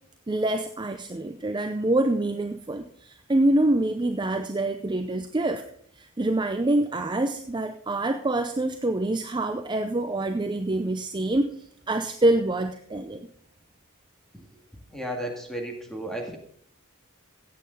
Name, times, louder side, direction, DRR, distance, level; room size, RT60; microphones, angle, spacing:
voice 1, 0.3-5.6 6.0-11.5 11.9-13.3, right 1 dB, 20° right, 6 dB, 0.6 m, -26 dB
voice 2, 14.9-16.4, right 1 dB, ahead, 2 dB, 2.1 m, -33 dB
15.0 x 8.6 x 3.9 m, 0.65 s
head